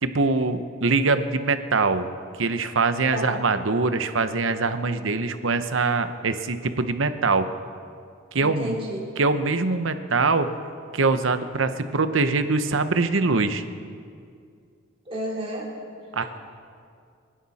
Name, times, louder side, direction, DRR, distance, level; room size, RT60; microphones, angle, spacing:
voice 1, 0.0-2.1 2.4-7.5 8.3-8.8 9.2-10.5 10.9-13.6 16.1-16.2, right 3 dB, 70° right, 9 dB, 0.9 m, -23 dB
voice 2, 8.4-9.0 15.1-15.7, equal, 30° right, -5 dB, 4.0 m, -31 dB
28.0 x 11.0 x 4.2 m, 2.3 s
head